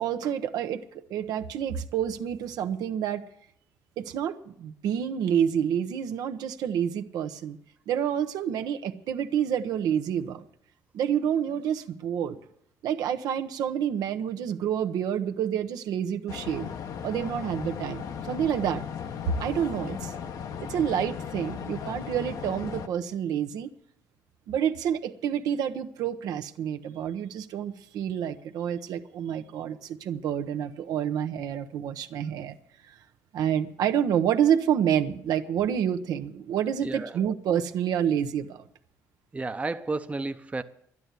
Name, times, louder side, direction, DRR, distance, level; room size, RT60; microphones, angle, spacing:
voice 1, 0.0-3.2 4.0-7.6 7.9-10.4 10.9-12.4 12.8-16.7 17.0-18.8 19.3-20.1 20.6-23.7 24.5-32.6 32.9-33.0 33.3-38.6, right 9 dB, 80° right, 7 dB, 0.9 m, -28 dB
sound 1, 16.3-22.9, left 7 dB, 65° left, 1.0 m, -36 dB
voice 2, 36.8-37.2 39.3-40.6, right 3 dB, 20° right, 9 dB, 0.7 m, -32 dB
11.5 x 11.0 x 8.2 m, 0.70 s
cardioid pair, 95°, 7 cm